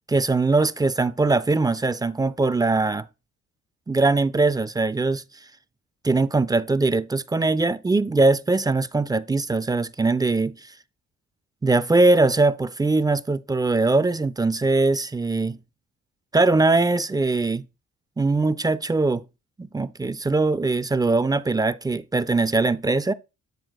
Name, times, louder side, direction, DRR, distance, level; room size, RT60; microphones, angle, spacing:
voice 1, 0.1-3.1 3.9-5.2 6.0-10.7 11.6-15.6 16.3-17.6 18.2-19.2 19.6-23.1, right 3 dB, 15° right, 0.4 m, -21 dB
9.1 x 7.6 x 2.3 m
cardioid pair, 90°, 30 cm